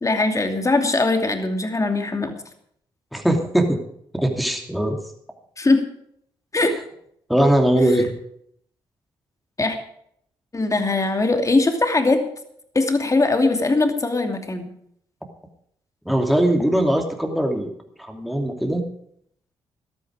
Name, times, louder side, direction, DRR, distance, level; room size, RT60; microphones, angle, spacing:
voice 1, 0.0-2.3 5.6-5.8 6.5-6.7 9.6-9.8 10.5-12.2 12.7-14.7, left 2 dB, 30° left, 5 dB, 2.6 m, -20 dB
voice 2, 3.1-3.8 4.1-5.0 7.3-8.1 16.1-17.7 18.0-18.8, right 1 dB, ahead, 3 dB, 2.7 m, -20 dB
13.0 x 13.0 x 4.9 m, 0.69 s
hypercardioid pair, 40°, 11 cm